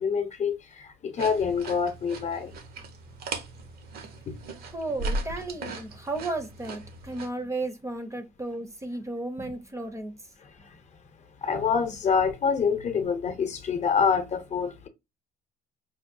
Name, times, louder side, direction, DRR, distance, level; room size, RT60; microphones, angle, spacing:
voice 1, 0.0-2.5 4.3-4.4 11.4-14.9, left 6 dB, 45° left, 0.7 m, -26 dB
sound 1, 1.2-7.3, right 2 dB, 65° right, 0.8 m, -37 dB
voice 2, 4.7-10.1, right 2 dB, 15° right, 0.6 m, -34 dB
5.4 x 2.2 x 2.6 m
cardioid pair, 110°, 17 cm